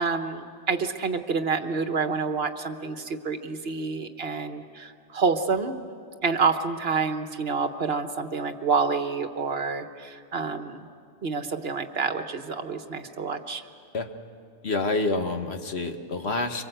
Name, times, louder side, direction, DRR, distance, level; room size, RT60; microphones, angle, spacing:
voice 1, 0.0-5.7 6.2-10.9 11.2-13.6, right 5 dB, 60° right, 7 dB, 1.4 m, -28 dB
voice 2, 14.6-16.6, left 3 dB, 65° left, 6 dB, 1.5 m, -27 dB
25.5 x 23.0 x 7.9 m, 2.3 s
omnidirectional pair, 1.2 m